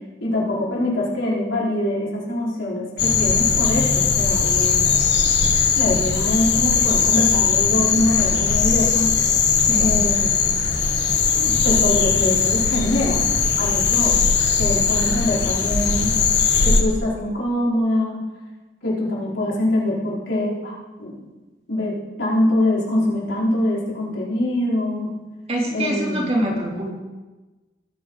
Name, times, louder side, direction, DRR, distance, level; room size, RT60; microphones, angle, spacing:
voice 1, 0.2-5.0 5.7-9.1 9.7-10.4 11.4-13.3 13.6-14.2 14.6-16.2 16.6-18.2 18.8-21.2 21.7-25.1 25.7-26.4, left 1 dB, 85° left, -6 dB, 4.9 m, -24 dB
sound 1, 3.0-16.8, left 5 dB, 65° left, 1.4 m, -19 dB
voice 2, 25.5-26.9, right 1 dB, 35° right, -3 dB, 3.4 m, -24 dB
20.0 x 8.9 x 4.1 m, 1.2 s
head